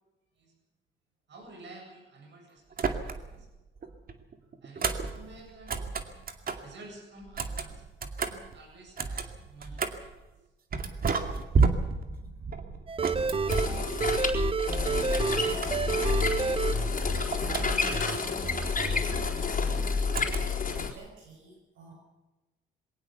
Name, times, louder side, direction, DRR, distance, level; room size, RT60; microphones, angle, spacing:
voice 1, 1.3-3.5 4.6-5.7 6.6-7.9 8.2-10.0, right 2 dB, 65° right, 3 dB, 7.7 m, -51 dB
sound 1, 2.7-3.5 3.8-6.7 7.2-10.1 10.7-14.3 14.7-16.4 16.7-18.1 20.1-20.7, right 4 dB, 45° right, 2.3 m, -32 dB
sound 2, 12.9-18.2 18.4-19.3, right 5 dB, 30° right, 0.8 m, -30 dB
sound 3, 13.5-20.9, left 5 dB, 40° left, 4.1 m, -29 dB
voice 2, 14.2-14.7 15.0-20.1 20.7-21.9, right 1 dB, 85° right, -1 dB, 6.7 m, -49 dB
22.0 x 18.0 x 6.9 m, 1.1 s
cardioid pair, 90°, 20 cm